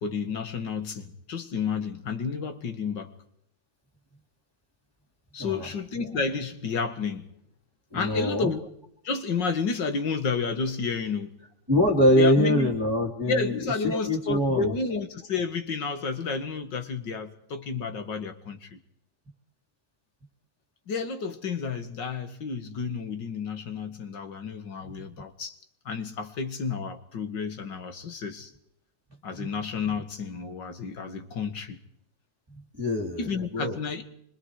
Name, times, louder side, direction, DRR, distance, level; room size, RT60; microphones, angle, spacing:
voice 1, 0.0-3.1 5.3-7.3 7.9-8.7 9.0-11.3 12.1-12.7 13.2-18.8 20.9-25.6 25.9-28.5 29.2-31.8 33.2-34.1, left 5 dB, 65° left, 2.5 m, -31 dB
voice 2, 7.9-8.5 11.7-14.7 29.4-29.5 32.8-33.8, left 1 dB, 10° right, 2.6 m, -24 dB
26.0 x 24.5 x 4.9 m
omnidirectional pair, 2.2 m